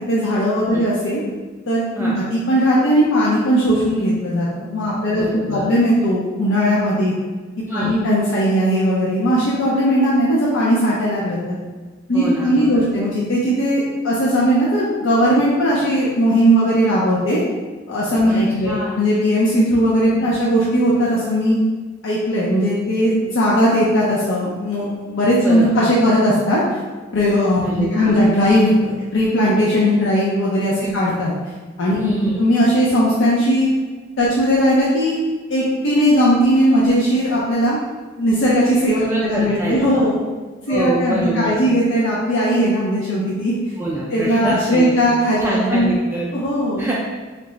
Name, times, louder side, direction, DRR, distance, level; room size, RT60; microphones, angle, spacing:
voice 1, 0.1-1.2 1.7-7.1 7.7-11.6 12.1-17.4 17.9-21.6 22.0-26.6 27.1-31.3 31.8-33.7 34.2-35.2 35.5-37.8 38.2-40.2 40.7-43.6 44.1-45.9 46.3-46.9, equal, 65° left, -6 dB, 0.5 m, -18 dB
voice 2, 5.2-5.7 7.7-7.9 12.1-12.9 18.3-18.4 18.6-19.0 25.4-25.7 27.6-28.2 30.8-30.9 32.0-32.4 39.0-40.0 40.7-41.6 43.8-45.0 45.4-46.3 46.8-46.9, right 1 dB, 10° right, -6 dB, 0.3 m, -25 dB
3.3 x 2.0 x 3.7 m, 1.4 s
head